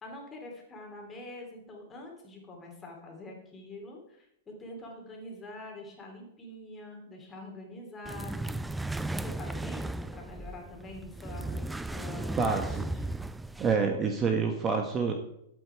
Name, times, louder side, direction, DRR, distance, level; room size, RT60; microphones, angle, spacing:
voice 1, 0.0-8.5 9.2-13.1, left 2 dB, 20° left, 0 dB, 3.4 m, -45 dB
sound 1, 8.1-13.7, right 2 dB, 5° right, 0.4 m, -36 dB
voice 2, 12.4-12.9 13.6-15.1, right 5 dB, 25° right, 5 dB, 1.3 m, -27 dB
11.5 x 8.4 x 4.7 m, 0.79 s
hypercardioid pair, 130°, 0 cm